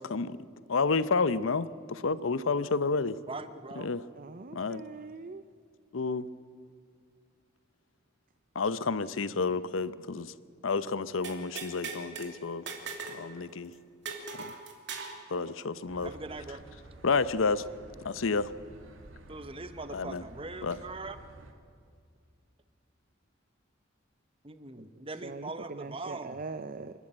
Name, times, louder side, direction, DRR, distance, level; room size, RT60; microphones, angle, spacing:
voice 1, 0.7-3.2 3.8-4.1 4.5-4.8 5.9-6.3 8.5-10.3 10.6-12.7 13.1-13.7 14.4-14.5 15.3-16.1 17.0-17.7 18.0-18.5 19.9-20.2 20.6-20.8, left 4 dB, 80° left, 15 dB, 0.7 m, -30 dB
voice 2, 3.3-3.9 16.0-16.6 19.3-21.2 24.4-26.4, right 3 dB, 30° right, 10 dB, 1.0 m, -41 dB
voice 3, 4.1-5.4 24.8-26.9, right 4 dB, 45° right, 11 dB, 0.5 m, -42 dB
sound 1, 11.2-12.3 12.7-13.2 13.5-13.6 14.1-15.2, right 5 dB, 60° right, 2.8 m, -39 dB
sound 2, 15.9-21.5, right 2 dB, 85° right, 2.1 m, -51 dB
27.0 x 12.0 x 8.8 m, 2.2 s
head